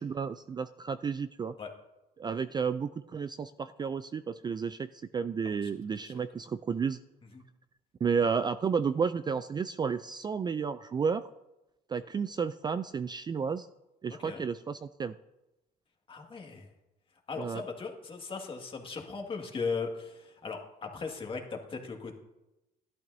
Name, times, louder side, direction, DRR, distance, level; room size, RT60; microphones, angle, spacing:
voice 1, 0.0-1.5 2.2-7.0 8.0-11.3 11.9-13.7 14.0-15.1 17.4-17.6, right 6 dB, 25° right, 12 dB, 0.3 m, -32 dB
voice 2, 16.1-16.7 17.3-22.1, left 4 dB, 30° left, 2 dB, 1.9 m, -38 dB
13.5 x 12.0 x 2.7 m, 0.96 s
cardioid pair, 110°, 17 cm